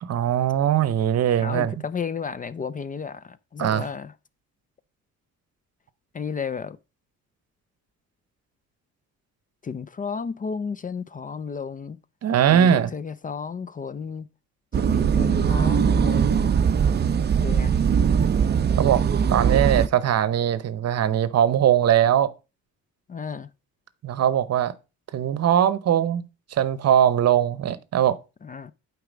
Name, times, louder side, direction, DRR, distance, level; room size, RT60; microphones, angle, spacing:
voice 1, 0.0-1.7 3.6-3.8 12.2-12.9 18.8-19.0 19.3-22.3 24.0-24.7 25.1-26.3 26.5-28.2, right 10 dB, 55° right, 0.8 m, -21 dB
voice 2, 1.4-4.1 6.1-6.8 9.6-12.0 12.5-14.3 14.7-16.5 17.4-17.7 23.1-23.5 28.4-28.7, left 6 dB, 30° left, 0.4 m, -33 dB
sound 1, 14.7-19.9, right 7 dB, 35° right, 0.5 m, -21 dB
8.0 x 4.7 x 5.0 m
cardioid pair, 90°, 30 cm